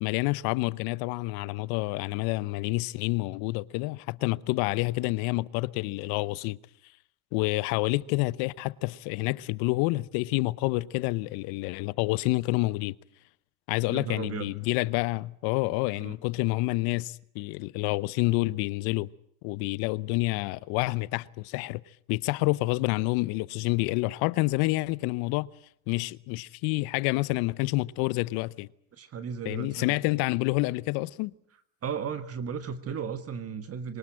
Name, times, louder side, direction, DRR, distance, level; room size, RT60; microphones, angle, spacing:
voice 1, 0.0-6.6 7.3-12.9 13.7-19.1 19.4-21.8 22.1-25.5 25.9-28.7 29.4-31.3, left 22 dB, 60° left, 0.9 m, -28 dB
voice 2, 13.9-14.5 16.0-16.1 28.9-30.0 31.8-34.0, right 7 dB, 35° right, 1.6 m, -35 dB
23.0 x 19.5 x 8.9 m
supercardioid pair, 100°, 41 cm